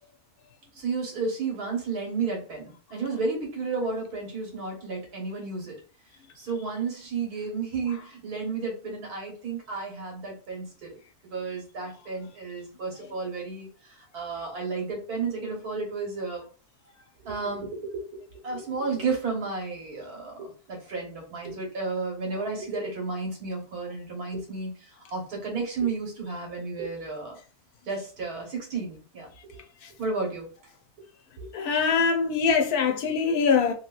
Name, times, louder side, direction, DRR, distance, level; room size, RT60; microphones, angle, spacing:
voice 1, 0.8-5.7 6.4-11.0 11.3-16.4 17.2-17.7 18.4-24.7 25.1-27.4 27.9-29.6 30.0-30.5 31.4-31.5, right 4 dB, 80° right, 1.7 m, -32 dB
voice 2, 31.5-33.7, left 5 dB, 90° left, 1.2 m, -23 dB
3.4 x 2.8 x 2.3 m
omnidirectional pair, 1.6 m